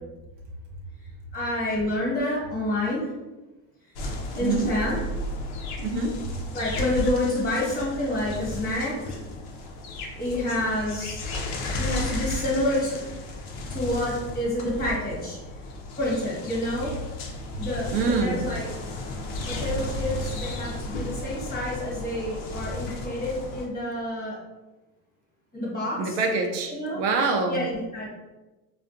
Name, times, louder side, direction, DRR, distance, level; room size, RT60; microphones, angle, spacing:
voice 1, 1.3-3.1 4.0-4.1 4.4-5.0 6.5-9.2 10.2-11.2 11.8-13.0 13.7-15.4 16.0-16.9 17.6-18.7 19.5-24.4 25.5-26.2 26.7-27.0 27.5-28.1, left 1 dB, 20° left, -5 dB, 1.2 m, -28 dB
sound 1, 4.0-23.7, left 2 dB, 55° left, 0.6 m, -34 dB
voice 2, 4.3-4.7 5.8-6.2 17.9-18.4 26.0-27.6, right 4 dB, 85° right, 3 dB, 0.6 m, -25 dB
2.3 x 2.3 x 2.5 m, 1.1 s
supercardioid pair, 100°, 48 cm